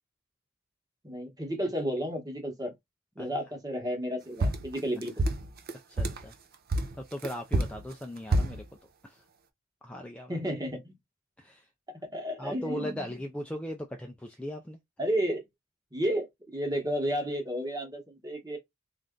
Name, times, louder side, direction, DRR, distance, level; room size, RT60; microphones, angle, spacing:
voice 1, 1.0-2.7 3.1-5.2 10.3-10.9 11.9-13.1 15.0-15.4 15.9-18.6, equal, 20° right, 1.2 m, -32 dB
sound 1, 4.4-6.3 6.7-8.6, right 1 dB, 50° right, 0.6 m, -28 dB
voice 2, 5.9-6.3 7.0-8.6 9.0-9.2 9.8-10.4 11.4-11.6 12.4-14.8, equal, 5° left, 0.4 m, -38 dB
3.3 x 2.5 x 3.7 m
head